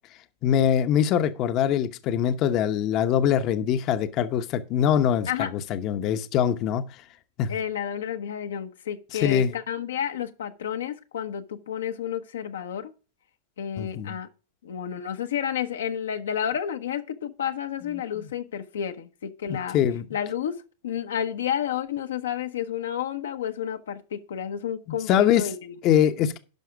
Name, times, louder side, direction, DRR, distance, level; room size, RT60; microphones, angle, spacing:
voice 1, 0.4-6.8 7.4-7.6 9.1-9.5 13.8-14.1 19.5-20.1 25.1-25.5 25.8-26.4, left 9 dB, 45° left, 0.9 m, -23 dB
voice 2, 7.5-12.9 13.6-14.3 14.6-19.8 20.1-25.7, left 9 dB, 80° left, 1.0 m, -31 dB
10.5 x 5.7 x 4.8 m
hypercardioid pair, 110°, 0 cm